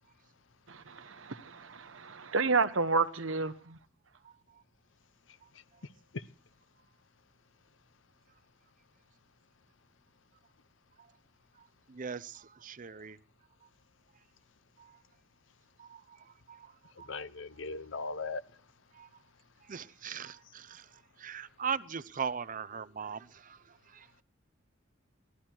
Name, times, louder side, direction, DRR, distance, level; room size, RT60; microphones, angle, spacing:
voice 1, 0.7-3.8, right 4 dB, 80° right, 1.0 m, -31 dB
voice 2, 4.2-4.6 5.4-5.5 11.0-11.1 11.6-13.2 14.8-15.0 15.8-17.2 18.9-19.1 19.6-24.1, right 6 dB, 45° right, 0.7 m, -41 dB
voice 3, 17.1-18.4, left 4 dB, 70° left, 0.8 m, -38 dB
18.0 x 13.0 x 4.5 m
head